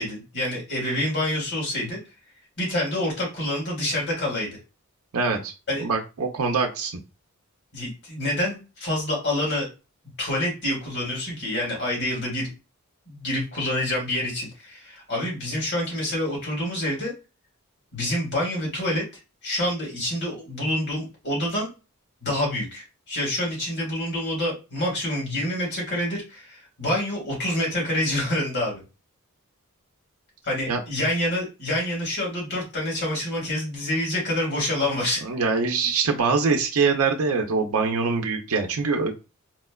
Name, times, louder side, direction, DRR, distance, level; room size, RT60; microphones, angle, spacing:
voice 1, 0.0-2.0 2.6-4.6 5.7-5.9 7.7-9.7 10.2-12.5 13.1-17.1 17.9-19.0 19.4-21.7 22.2-28.8 30.4-35.2, left 1 dB, 55° left, -2 dB, 1.7 m, -27 dB
voice 2, 5.1-5.5 5.8-6.9 30.7-30.8 35.2-39.1, right 4 dB, 80° right, 3 dB, 0.5 m, -23 dB
4.1 x 2.1 x 2.2 m, 0.29 s
head